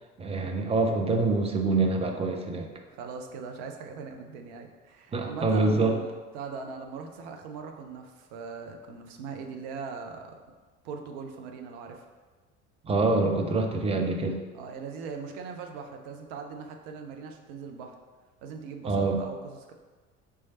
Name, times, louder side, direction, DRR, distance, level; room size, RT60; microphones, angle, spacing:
voice 1, 0.2-2.7 5.1-5.9 12.8-14.4 18.8-19.2, right 3 dB, 15° right, 4 dB, 0.5 m, -25 dB
voice 2, 2.9-10.4 10.8-12.1 14.5-18.0 18.4-19.7, right 5 dB, 60° right, 4 dB, 0.6 m, -40 dB
3.5 x 3.2 x 4.1 m, 1.4 s
figure-of-eight pair, 60°, 37 cm